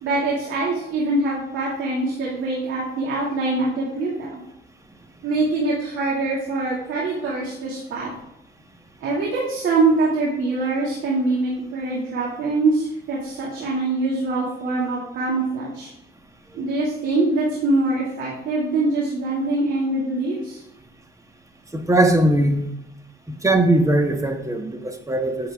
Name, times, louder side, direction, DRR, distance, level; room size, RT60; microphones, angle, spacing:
voice 1, 0.0-4.4 5.2-8.1 9.0-15.9 16.5-20.6, right 2 dB, 80° right, -5 dB, 2.5 m, -23 dB
voice 2, 21.7-22.7 23.3-25.5, right 1 dB, 15° right, 5 dB, 1.4 m, -20 dB
9.2 x 7.2 x 3.7 m, 0.86 s
cardioid pair, 90°, 20 cm